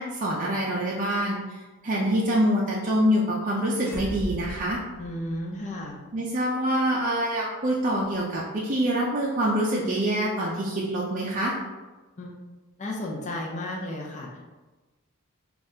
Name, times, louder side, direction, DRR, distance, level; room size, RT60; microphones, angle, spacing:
voice 1, 0.0-1.6 1.8-4.8 6.1-11.6, equal, 35° right, -5 dB, 0.4 m, -25 dB
sound 1, 3.7-5.7, equal, 15° left, 1.3 m, -37 dB
voice 2, 5.0-6.0 12.2-12.3 12.8-14.4, left 1 dB, 35° left, -2 dB, 0.6 m, -33 dB
5.1 x 2.4 x 2.7 m, 1.2 s
head